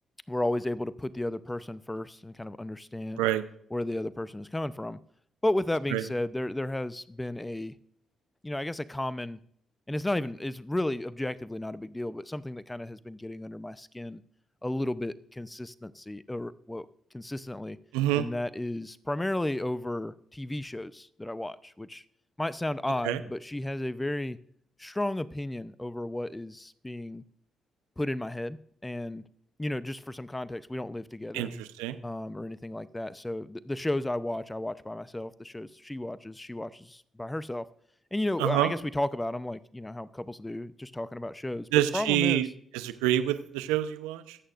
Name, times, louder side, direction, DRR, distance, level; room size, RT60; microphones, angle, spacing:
voice 1, 0.3-3.2 3.7-5.0 5.4-7.7 8.4-9.4 9.9-14.2 14.6-16.9 17.1-17.8 18.1-22.0 22.4-24.4 24.8-27.2 28.0-29.2 29.6-31.5 32.0-37.7 38.1-41.7 41.9-42.4, left 1 dB, 15° left, 0.7 m, -33 dB
voice 2, 17.9-18.3 23.0-23.2 31.3-32.0 38.4-38.7 41.7-42.5 42.7-44.4, right 13 dB, 80° right, 0.8 m, -27 dB
25.5 x 8.8 x 2.6 m
hypercardioid pair, 45°, 0 cm